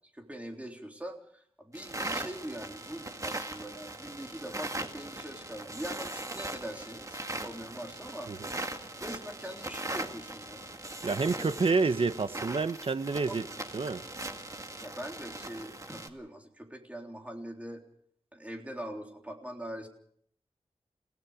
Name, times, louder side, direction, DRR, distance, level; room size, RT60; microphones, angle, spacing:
voice 1, 0.1-8.3 9.0-10.7 11.4-11.5 13.3-13.6 14.8-17.8 18.3-19.9, equal, 10° right, 2 dB, 3.7 m, -42 dB
sound 1, 1.7-16.1, right 2 dB, 30° right, 1.9 m, -40 dB
voice 2, 11.0-13.4 13.7-14.0, right 4 dB, 55° right, 12 dB, 1.0 m, -28 dB
30.0 x 17.5 x 5.0 m, 0.62 s
wide cardioid pair, 95°, 12 cm